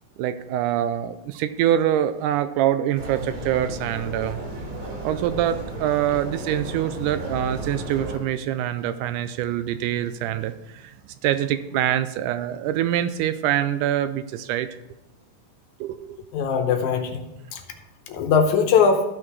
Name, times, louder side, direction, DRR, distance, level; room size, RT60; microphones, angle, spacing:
voice 1, 0.2-4.4 5.0-10.9 11.2-14.7 15.8-16.2, right 11 dB, 80° right, 12 dB, 2.0 m, -25 dB
sound 1, 2.9-8.2, right 1 dB, 45° right, 3.0 m, -34 dB
voice 2, 16.3-17.3 17.5-17.6 18.1-19.0, left 6 dB, 75° left, 5 dB, 2.1 m, -20 dB
13.5 x 6.1 x 4.7 m, 0.90 s
omnidirectional pair, 3.8 m